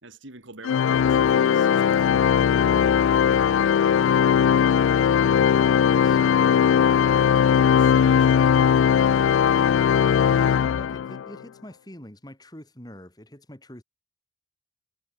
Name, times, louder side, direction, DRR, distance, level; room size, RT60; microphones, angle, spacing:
voice 1, 0.0-2.0 7.6-9.1, right 2 dB, 80° right, 3.6 m, -45 dB
Organ, 0.6-11.3, left 8 dB, 90° left, 0.3 m, -19 dB
voice 2, 10.3-13.8, left 1 dB, 20° left, 2.9 m, -44 dB
head